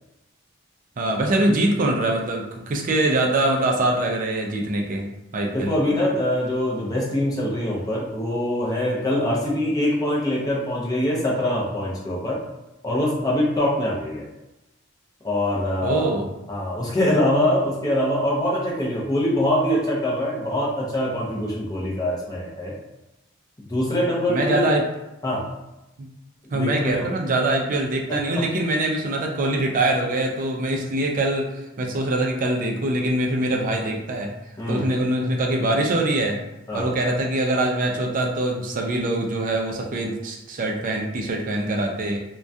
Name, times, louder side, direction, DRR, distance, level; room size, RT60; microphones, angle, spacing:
voice 1, 1.0-5.1 5.3-5.7 15.8-16.3 24.3-24.9 26.0-26.1 26.5-31.5 31.8-34.3 34.7-36.4 36.7-42.2, right 1 dB, 40° right, 1 dB, 0.3 m, -23 dB
voice 2, 5.5-12.4 12.8-14.2 15.2-16.2 16.5-22.7 23.7-24.7 25.2-25.5 26.5-27.0 28.1-28.2 34.6-34.8 36.7-36.9, left 1 dB, 20° left, -5 dB, 0.5 m, -23 dB
2.2 x 2.2 x 2.6 m, 0.96 s
head